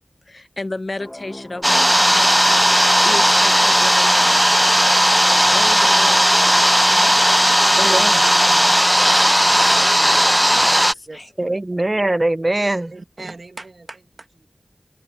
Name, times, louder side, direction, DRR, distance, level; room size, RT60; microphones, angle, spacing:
voice 1, 0.3-2.4 2.8-4.9 5.3-7.1 7.8-9.6 10.6-11.3, left 2 dB, 50° left, 0.9 m, -35 dB
sound 1, 1.0-10.4, left 1 dB, 20° left, 1.8 m, -40 dB
sound 2, 1.6-10.9, equal, 5° right, 0.3 m, -15 dB
voice 2, 7.8-8.2 11.4-12.9, right 2 dB, 35° right, 0.8 m, -21 dB
voice 3, 10.1-10.7 11.1-11.6 12.9-14.5, right 2 dB, 65° right, 1.8 m, -40 dB
wide cardioid pair, 55°, 0 cm